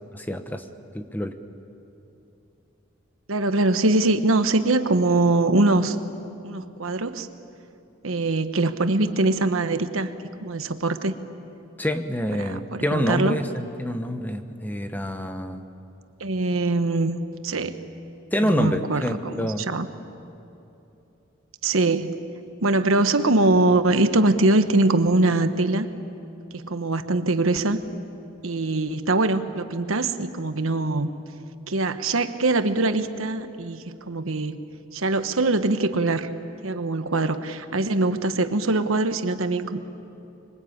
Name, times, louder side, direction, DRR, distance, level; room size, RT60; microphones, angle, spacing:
voice 1, 0.1-0.6 0.9-1.3 11.8-15.6 17.5-17.7 18.3-19.7, equal, 10° left, 7 dB, 1.0 m, -27 dB
voice 2, 3.3-6.0 6.4-7.3 8.0-10.1 10.4-11.1 12.4-13.4 16.2-17.2 17.4-17.7 18.4-19.9 21.6-22.1 22.6-25.9 26.5-27.8 28.4-31.1 31.7-34.6 34.9-36.3 36.6-39.8, right 2 dB, 85° right, 9 dB, 1.2 m, -22 dB
26.0 x 23.0 x 8.7 m, 2.9 s
head